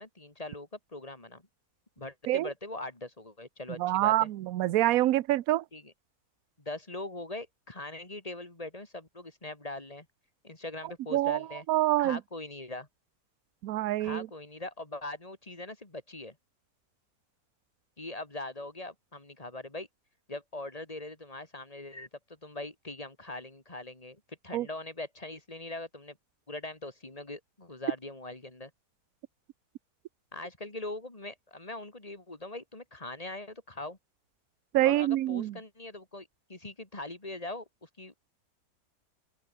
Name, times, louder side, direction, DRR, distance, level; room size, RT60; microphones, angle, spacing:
voice 1, 0.0-1.4 2.0-4.3 5.7-5.9 6.6-10.1 10.4-11.6 12.0-12.9 14.0-16.4 18.0-19.9 20.3-22.1 22.4-26.2 26.5-28.7 30.3-34.0 34.8-38.3, left 2 dB, 25° left, 2.8 m, -41 dB
voice 2, 3.8-5.6 11.1-12.2 13.6-14.3 24.5-24.7 34.7-35.5, right 15 dB, 75° right, 1.1 m, -26 dB
open air
omnidirectional pair, 1.6 m